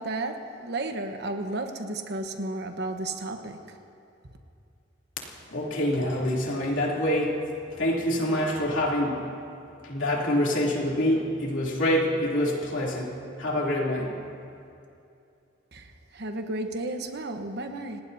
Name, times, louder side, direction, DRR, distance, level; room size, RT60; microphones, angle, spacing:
voice 1, 0.0-3.6 15.7-15.9 16.1-18.0, right 2 dB, 60° right, 5 dB, 1.2 m, -33 dB
voice 2, 5.5-7.4 7.8-9.3 9.8-13.1 13.4-14.2, left 1 dB, 75° left, -3 dB, 3.1 m, -26 dB
27.5 x 19.0 x 2.8 m, 2.6 s
head